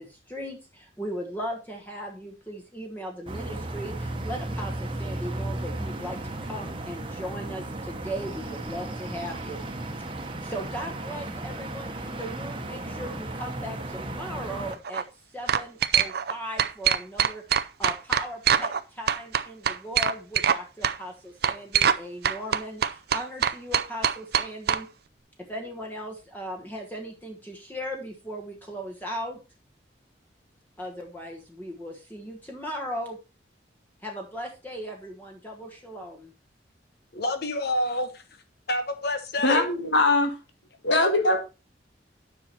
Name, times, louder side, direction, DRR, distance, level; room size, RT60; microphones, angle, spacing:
voice 1, 0.0-9.6 10.0-15.1 15.3-24.9 25.4-29.4 30.8-33.2 34.0-36.3, equal, 10° left, 1.2 m, -38 dB
sound 1, 3.3-14.8, right 1 dB, 30° right, 1.1 m, -35 dB
sound 2, 14.7-15.0 15.5-16.3 16.6-18.8 19.1-20.6 20.8-21.0 21.4-22.0 22.2-24.8, right 8 dB, 60° right, 0.5 m, -23 dB
voice 2, 37.1-38.2 38.7-39.7, left 1 dB, 60° left, 1.0 m, -28 dB
voice 3, 39.4-40.3 40.8-41.4, left 2 dB, 75° left, 1.7 m, -21 dB
9.9 x 5.8 x 4.3 m
head